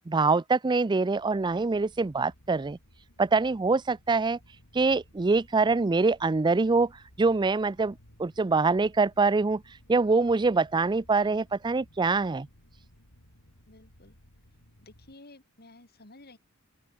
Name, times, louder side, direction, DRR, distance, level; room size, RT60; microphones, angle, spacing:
voice 1, 0.0-2.8 3.2-4.4 4.7-6.9 7.2-7.9 8.2-9.6 9.9-12.5, right 3 dB, 20° right, 0.4 m, -24 dB
sound 1, 1.1-15.1, equal, 90° left, 7.5 m, -58 dB
voice 2, 13.7-14.2 14.8-16.4, left 2 dB, 50° left, 3.3 m, -53 dB
open air
head